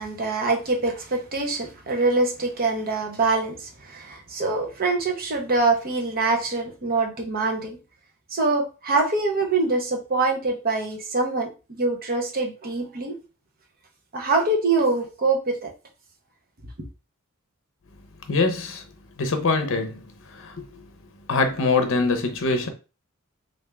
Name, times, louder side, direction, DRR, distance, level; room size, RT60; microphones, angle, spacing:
voice 1, 0.0-7.8 8.3-13.2 14.1-15.7, right 3 dB, 45° right, 0.8 m, -24 dB
voice 2, 18.3-18.8 19.2-20.0 20.3-20.8 21.3-22.7, left 3 dB, 65° left, 0.7 m, -23 dB
3.4 x 2.6 x 3.3 m
head